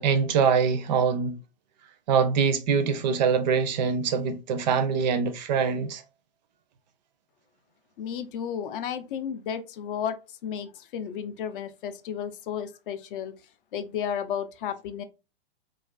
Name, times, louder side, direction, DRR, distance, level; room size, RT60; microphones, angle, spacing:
voice 1, 0.0-1.4 2.1-6.0, right 6 dB, 45° right, 0.4 m, -24 dB
voice 2, 8.0-10.2 10.4-13.3 13.7-15.0, left 8 dB, 55° left, 0.5 m, -33 dB
2.4 x 2.3 x 2.3 m
hypercardioid pair, 135°, 31 cm